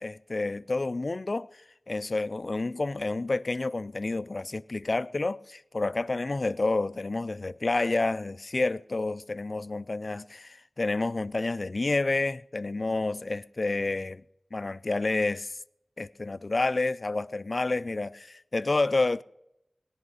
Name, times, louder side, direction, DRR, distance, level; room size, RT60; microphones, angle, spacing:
voice 1, 0.0-1.5 1.9-14.2 14.5-15.6 16.0-19.2, left 2 dB, 50° left, 0.4 m, -29 dB
18.0 x 10.5 x 4.9 m
wide cardioid pair, 60°, 0 cm